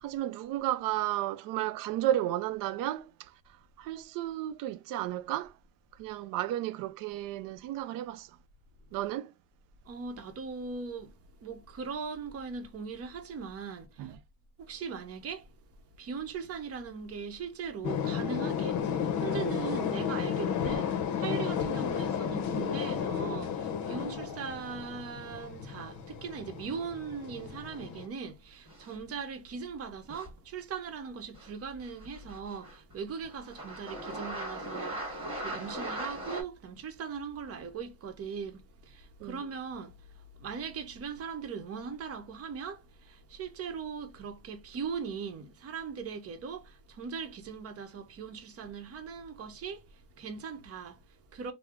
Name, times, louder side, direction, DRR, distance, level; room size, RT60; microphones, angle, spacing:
voice 1, 0.0-3.3 3.8-5.5 6.0-8.3 8.9-9.3 14.0-14.1 39.2-39.4, right 13 dB, 70° right, 0.5 m, -33 dB
voice 2, 9.8-14.2 14.6-15.5 16.0-51.5, right 6 dB, 40° right, 0.8 m, -40 dB
sound 1, 17.8-28.1, left 7 dB, 55° left, 0.6 m, -33 dB
sound 2, 28.7-29.2 30.1-30.4 31.3-31.5 31.8-32.9 33.2-36.4, right 1 dB, 15° right, 1.7 m, -39 dB
3.2 x 2.0 x 3.5 m
cardioid pair, 135°, 35 cm